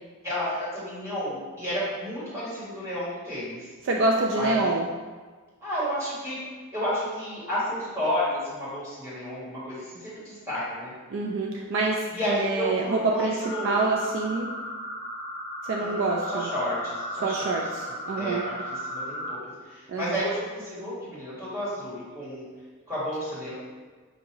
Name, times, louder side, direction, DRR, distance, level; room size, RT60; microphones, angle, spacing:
voice 1, 0.2-3.7 4.3-4.6 5.6-6.4 6.7-10.9 12.1-13.7 15.8-17.6 18.1-19.4 19.6-22.4 22.9-23.5, equal, 15° right, -10 dB, 1.5 m, -31 dB
voice 2, 3.8-4.9 11.1-13.4 13.6-14.5 15.6-16.5 17.2-18.5 19.9-20.2, right 3 dB, 55° right, 0 dB, 0.3 m, -26 dB
sound 1, 13.4-19.4, equal, 30° left, 0.4 m, -35 dB
5.7 x 2.7 x 2.9 m, 1.4 s
head